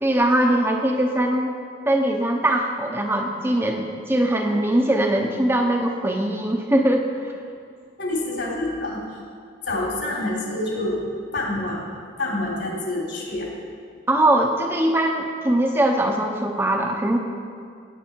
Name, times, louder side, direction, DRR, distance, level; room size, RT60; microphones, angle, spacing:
voice 1, 0.0-1.5 1.9-7.3 14.1-17.2, right 1 dB, 10° right, 2 dB, 0.7 m, -21 dB
voice 2, 8.0-9.0 9.6-11.0 11.3-11.8 12.2-13.5, left 2 dB, 70° left, -3 dB, 3.5 m, -27 dB
16.5 x 9.0 x 4.5 m, 2.3 s
head